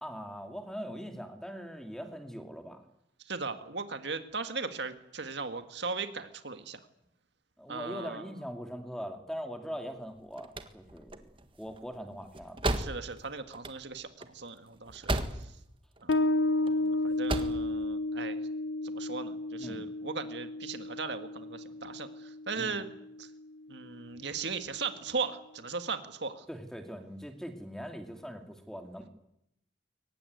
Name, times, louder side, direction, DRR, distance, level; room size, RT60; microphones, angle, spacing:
voice 1, 0.0-2.8 7.6-11.2 11.6-12.7 19.6-19.8 22.5-22.8 26.5-29.1, equal, 5° left, 6 dB, 2.4 m, -41 dB
voice 2, 3.3-6.8 7.7-8.3 12.8-15.5 16.0-18.4 18.8-22.9 23.2-23.3 23.7-26.5, right 4 dB, 60° right, 8 dB, 1.9 m, -38 dB
sound 1, 10.1-15.7 16.0-16.7 17.1-17.7, right 1 dB, 25° right, 1.6 m, -35 dB
Bass guitar, 16.1-23.2, left 2 dB, 70° left, 1.0 m, -32 dB
23.0 x 19.0 x 9.4 m, 0.79 s
head